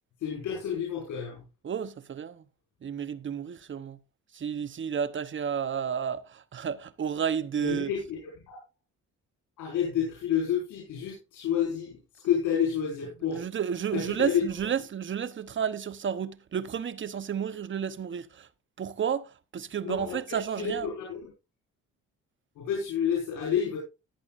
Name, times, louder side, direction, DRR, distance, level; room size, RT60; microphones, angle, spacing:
voice 1, 0.2-1.4 7.6-8.2 8.5-8.6 9.6-12.0 12.2-13.4 13.9-14.4 19.8-21.2 22.6-23.8, left 8 dB, 85° left, 5.5 m, -29 dB
voice 2, 1.6-2.4 2.8-4.0 4.3-7.9 13.3-18.5 18.8-20.9, right 8 dB, 40° right, 0.9 m, -31 dB
17.5 x 8.6 x 2.5 m
cardioid pair, 90°, 30 cm